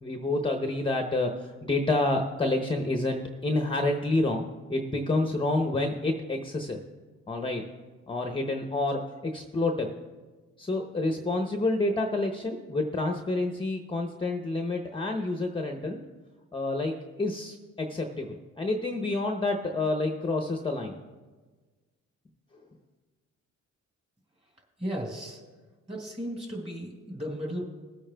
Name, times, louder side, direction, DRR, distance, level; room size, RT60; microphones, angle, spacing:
voice 1, 0.0-6.8 7.3-7.6 8.1-9.9 10.6-16.0 16.5-21.0, left 2 dB, 15° left, 3 dB, 0.8 m, -28 dB
voice 2, 24.8-25.4 25.9-27.6, equal, 20° right, -2 dB, 3.7 m, -35 dB
22.0 x 8.5 x 2.3 m, 1.3 s
cardioid pair, 90°, 30 cm